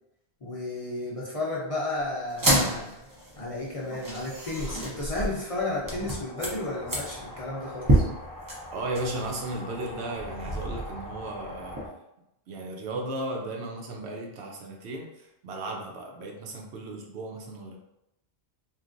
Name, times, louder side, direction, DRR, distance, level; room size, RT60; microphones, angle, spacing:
voice 1, 0.4-2.9 3.4-8.0, left 2 dB, 40° left, -5 dB, 0.6 m, -33 dB
sound 1, 2.3-11.9, right 1 dB, 25° right, 0.5 m, -30 dB
voice 2, 8.7-11.9 12.5-17.8, right 2 dB, 85° right, 0 dB, 0.9 m, -35 dB
3.0 x 2.4 x 2.5 m, 0.86 s
omnidirectional pair, 1.1 m